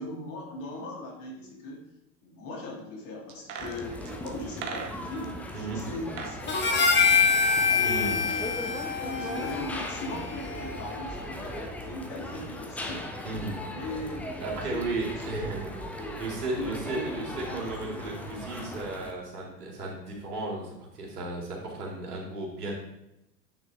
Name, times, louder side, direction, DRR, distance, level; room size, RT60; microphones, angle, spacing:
voice 1, 0.0-1.8 2.2-7.2 7.7-8.5 9.0-13.0 13.7-15.5 16.0-16.1 16.6-18.0, left 1 dB, 45° left, -1 dB, 2.6 m, -39 dB
sound 1, 3.3-5.3 5.9-6.4 6.7-8.1 8.3-8.4, right 6 dB, 50° right, 1.3 m, -40 dB
sound 2, 3.6-19.1, equal, 5° left, 0.4 m, -38 dB
Harmonica, 6.5-11.0, left 5 dB, 25° left, 1.3 m, -25 dB
voice 2, 7.8-8.2 13.2-13.5 14.4-22.7, right 2 dB, 75° right, -2 dB, 2.7 m, -35 dB
8.8 x 6.2 x 3.4 m, 0.87 s
figure-of-eight pair, 85°, 47 cm